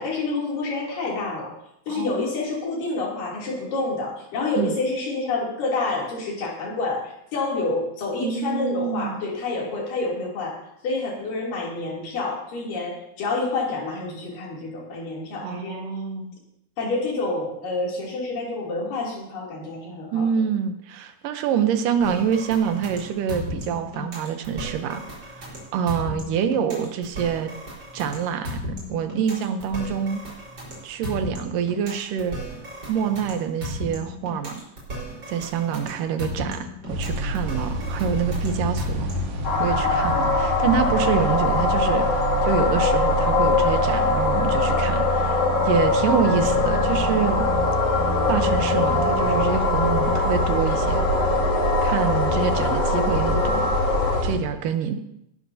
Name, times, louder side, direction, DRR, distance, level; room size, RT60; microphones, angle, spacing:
voice 1, 0.0-1.5 1.9-10.6 10.8-15.8 16.8-20.3, left 3 dB, 85° left, -3 dB, 4.7 m, -28 dB
voice 2, 1.9-2.3 4.6-4.7 8.2-9.2 15.4-16.3 20.1-27.5 27.9-28.6 28.9-30.2 30.8-32.4 32.9-34.6 35.3-39.1 39.6-47.5 48.3-51.0 51.8-53.7 54.2-55.0, right 7 dB, 85° right, 8 dB, 2.6 m, -26 dB
sound 1, 22.0-39.4, equal, 35° right, 4.9 m, -35 dB
sound 2, 36.9-54.4, right 2 dB, 55° right, 2.4 m, -27 dB
sound 3, 39.4-54.2, left 4 dB, 55° left, 2.6 m, -23 dB
18.5 x 12.0 x 2.8 m, 0.79 s
omnidirectional pair, 3.7 m